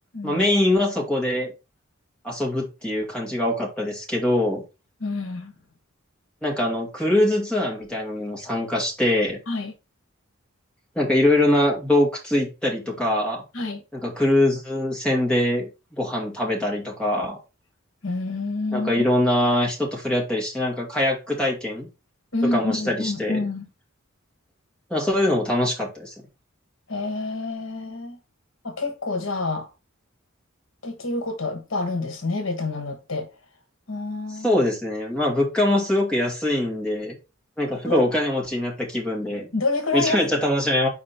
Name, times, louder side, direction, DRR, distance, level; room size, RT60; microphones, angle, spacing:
voice 1, 0.2-1.5 2.2-4.6 6.4-9.4 11.0-13.4 13.9-17.4 18.7-21.9 22.5-23.4 24.9-26.1 34.4-37.1 37.6-39.5 39.9-40.9, left 1 dB, 5° left, 2.5 m, -23 dB
voice 2, 5.0-5.5 9.5-9.7 13.5-13.8 18.0-19.0 22.3-23.7 26.9-28.2 28.6-29.7 30.8-33.3 33.9-34.6 37.8-38.0 39.2-40.3, left 3 dB, 70° left, 1.4 m, -28 dB
5.1 x 4.2 x 5.7 m
head